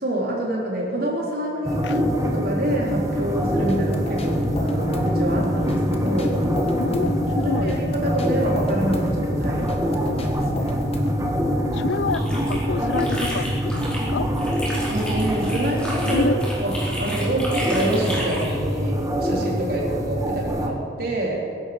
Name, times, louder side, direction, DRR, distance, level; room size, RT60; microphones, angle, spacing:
voice 1, 0.0-6.5 7.4-10.8 14.9-16.3 16.6-21.5, right 1 dB, 55° right, 3.9 m, -27 dB
sound 1, 1.6-20.7, equal, 20° right, 1.4 m, -24 dB
sound 2, 3.4-11.4, left 1 dB, 35° left, 1.5 m, -36 dB
voice 2, 6.8-7.8 11.7-14.3 16.0-16.3, left 4 dB, 85° left, 0.5 m, -28 dB
sound 3, 11.9-14.1 14.3-18.5, equal, 5° left, 4.3 m, -32 dB
22.5 x 11.5 x 5.2 m
head